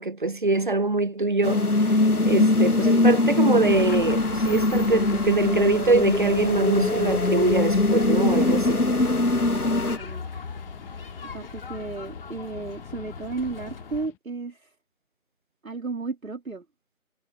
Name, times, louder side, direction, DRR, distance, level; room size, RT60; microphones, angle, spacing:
voice 1, 0.0-1.6 2.2-8.8, right 3 dB, 35° right, 0.8 m, -23 dB
sound 1, 1.4-10.0, left 2 dB, 85° left, 1.4 m, -22 dB
voice 2, 2.8-3.2 9.3-10.2 11.3-14.7 15.6-16.6, right 3 dB, 65° right, 3.6 m, -34 dB
sound 2, 3.7-14.1, left 5 dB, 40° left, 4.2 m, -39 dB
Guitar, 5.5-14.2, left 19 dB, 5° left, 1.9 m, -50 dB
figure-of-eight pair, 155°, 44 cm